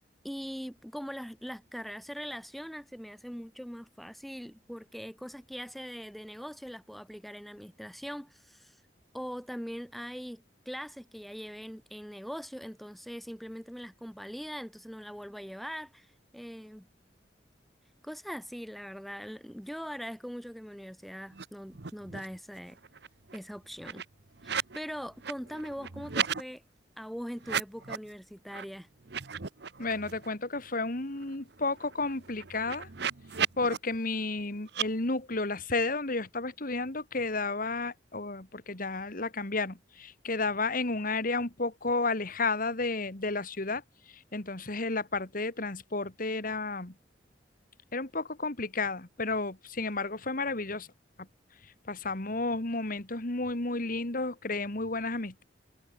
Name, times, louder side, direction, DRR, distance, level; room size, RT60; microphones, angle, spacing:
voice 1, 0.2-8.8 9.1-16.1 16.3-16.9 18.0-22.8 23.3-24.0 24.4-26.6 27.0-28.9, equal, ahead, 3.5 m, -41 dB
sound 1, 21.3-21.5 21.7-22.4 22.7-24.8 25.1-26.4 27.4-28.1 28.5-28.6 29.0-30.3 30.7-30.8 31.1-33.8 34.7-34.9, right 7 dB, 65° right, 1.0 m, -36 dB
voice 2, 29.8-32.9 33.6-43.8 44.1-46.9 47.9-50.9 51.9-55.4, left 3 dB, 50° left, 2.2 m, -32 dB
head